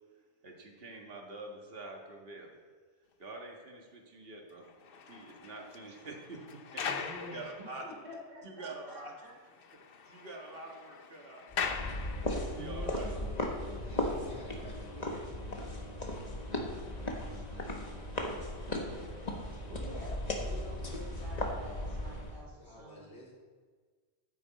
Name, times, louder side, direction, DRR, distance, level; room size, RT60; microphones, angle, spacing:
voice 1, 0.4-2.6 3.2-4.7 5.1-6.9 7.3-7.8 8.4-9.1 10.1-13.1, right 2 dB, 65° right, 1 dB, 1.8 m, -46 dB
sound 1, 4.6-8.3 8.6-8.7 9.1-9.2 9.5-12.7 13.4-13.6, left 6 dB, 60° left, 0.9 m, -41 dB
voice 2, 6.8-9.3 12.5-13.3 18.6-18.7 19.2-19.3 19.7-23.2, left 1 dB, 80° right, -4 dB, 4.1 m, -48 dB
sound 2, 11.5-22.4, left 1 dB, 40° left, 1.4 m, -37 dB
voice 3, 13.8-15.7 22.6-23.3, left 1 dB, 80° left, -4 dB, 3.2 m, -52 dB
14.5 x 8.5 x 4.2 m, 1.5 s
omnidirectional pair, 1.1 m